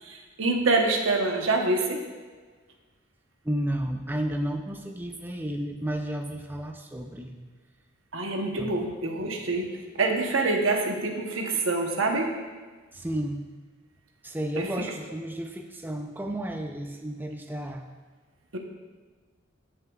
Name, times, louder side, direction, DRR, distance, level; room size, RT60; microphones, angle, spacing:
voice 1, 0.0-2.0 8.1-12.3 14.6-14.9 18.5-18.6, right 3 dB, 70° right, 2 dB, 1.0 m, -26 dB
voice 2, 3.4-7.3 8.6-8.7 12.9-13.4 14.2-17.8, right 1 dB, 10° right, 4 dB, 0.5 m, -32 dB
15.5 x 6.6 x 2.4 m, 1.4 s
head